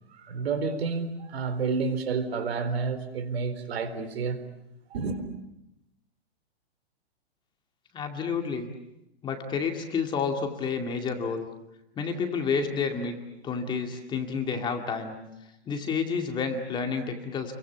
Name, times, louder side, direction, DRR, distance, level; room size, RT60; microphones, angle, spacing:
voice 1, 0.2-4.4 4.9-5.2, right 4 dB, 70° right, 4.1 m, -30 dB
voice 2, 7.9-8.7 9.2-11.5 12.0-13.2 13.4-15.2 15.7-17.6, left 5 dB, 15° left, 2.3 m, -30 dB
29.5 x 23.5 x 8.2 m
hypercardioid pair, 160°, 32 cm